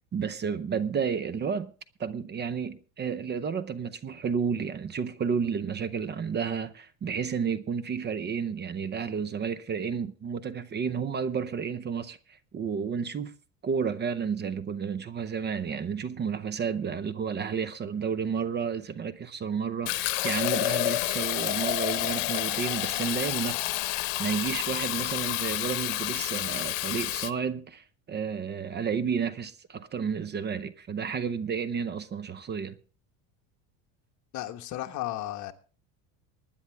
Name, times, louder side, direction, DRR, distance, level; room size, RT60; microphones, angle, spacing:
voice 1, 0.1-1.7 2.0-13.3 13.6-32.8, right 6 dB, 30° right, 0.7 m, -31 dB
Fill (with liquid), 19.9-27.3, left 19 dB, 90° left, 0.9 m, -29 dB
voice 2, 34.3-35.5, left 14 dB, 50° left, 1.3 m, -34 dB
20.0 x 10.0 x 3.5 m
cardioid pair, 130°, 37 cm